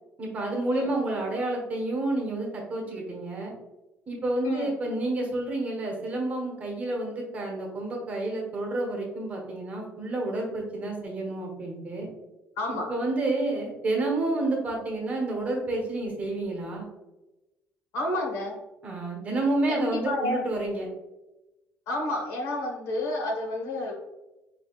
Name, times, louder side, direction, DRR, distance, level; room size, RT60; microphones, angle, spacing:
voice 1, 0.2-3.5 4.1-12.1 12.9-16.9 18.8-20.9, right 2 dB, 30° right, 0 dB, 1.1 m, -29 dB
voice 2, 12.6-12.9 17.9-18.6 19.7-20.4 21.9-23.9, left 1 dB, 75° left, -1 dB, 1.3 m, -30 dB
4.8 x 3.3 x 2.4 m, 0.98 s
cardioid pair, 155°, 5 cm